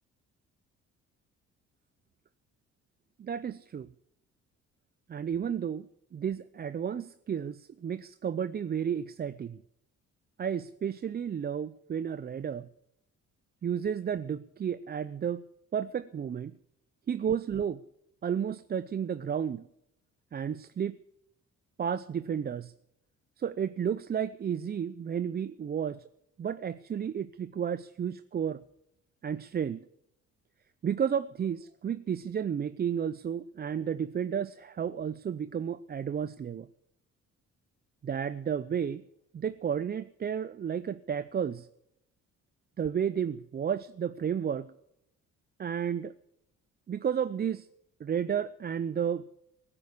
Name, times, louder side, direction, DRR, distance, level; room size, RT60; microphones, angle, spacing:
voice 1, 3.2-3.9 5.1-5.9 6.1-9.6 10.4-12.7 13.6-15.4 15.7-16.5 17.1-17.8 18.2-19.6 20.3-21.0 21.8-22.7 23.4-26.0 26.4-28.6 29.2-29.8 30.8-36.7 38.0-39.0 39.3-41.7 42.8-44.7 45.6-46.1 46.9-47.7 48.0-49.3, right 8 dB, 30° right, 15 dB, 0.5 m, -32 dB
17.0 x 9.8 x 8.3 m, 0.81 s
cardioid pair, 90°, 30 cm